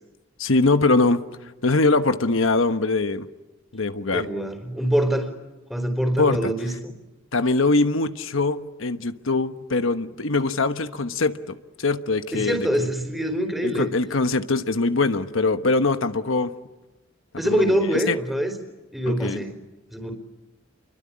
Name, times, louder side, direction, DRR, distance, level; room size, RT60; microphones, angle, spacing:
voice 1, 0.4-3.3 3.7-4.3 6.2-6.5 7.3-12.9 13.6-16.5 17.3-18.2 19.1-19.4, left 3 dB, 75° left, 8 dB, 1.2 m, -23 dB
voice 2, 4.1-5.3 5.7-6.9 12.3-13.9 17.4-18.6 18.9-19.5 19.9-20.1, equal, 5° right, 3 dB, 4.0 m, -24 dB
29.0 x 23.5 x 8.8 m, 1.0 s
head